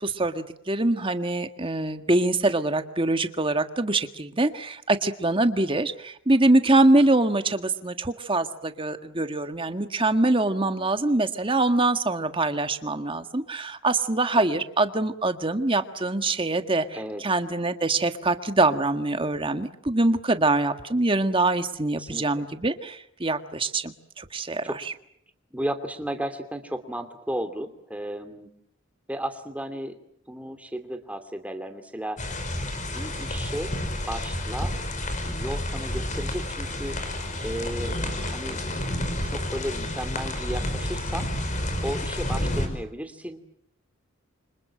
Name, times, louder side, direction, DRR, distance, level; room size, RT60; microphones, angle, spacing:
voice 1, 0.0-16.9 17.2-24.9, right 2 dB, 25° right, 8 dB, 1.6 m, -24 dB
voice 2, 10.4-10.9 14.4-14.6 16.9-17.2 21.9-22.4 24.6-24.8 25.5-28.5 29.1-30.0 30.3-32.2 32.9-33.7 34.1-34.7 35.2-37.0 37.4-37.9 38.3-38.6 39.0-41.3 41.8-43.4, right 1 dB, 5° right, 7 dB, 2.8 m, -34 dB
sound 1, 32.2-42.7, left 1 dB, 35° left, 5.4 m, -30 dB
29.0 x 26.5 x 7.6 m, 0.73 s
head